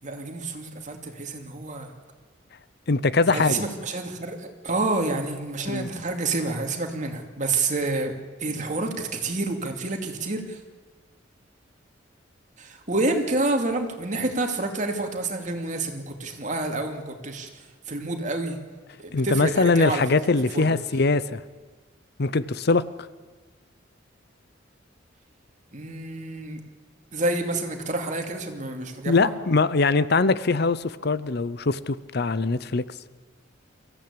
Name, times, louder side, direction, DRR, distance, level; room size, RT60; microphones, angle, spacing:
voice 1, 0.0-1.9 3.3-10.6 12.6-18.6 19.0-20.0 20.5-20.8 25.7-26.6 27.1-29.3, right 2 dB, 40° right, 4 dB, 2.6 m, -28 dB
voice 2, 2.9-3.6 5.7-5.9 19.1-21.4 22.2-22.8 29.1-32.8, left 3 dB, 55° left, 16 dB, 0.7 m, -22 dB
24.5 x 15.0 x 8.7 m, 1.4 s
head